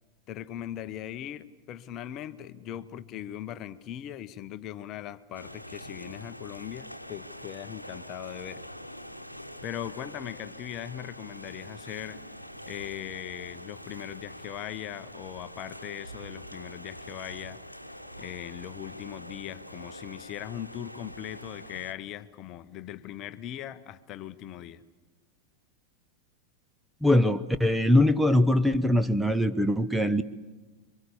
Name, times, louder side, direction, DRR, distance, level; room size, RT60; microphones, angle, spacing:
voice 1, 0.3-8.6 9.6-12.2 12.7-17.6 18.2-24.8, left 11 dB, 35° left, 0.9 m, -39 dB
sound 1, 5.3-21.9, equal, 90° left, 1.0 m, -44 dB
voice 2, 27.0-30.2, left 1 dB, 5° right, 0.8 m, -22 dB
27.0 x 24.0 x 7.0 m
figure-of-eight pair, 90°, 0 cm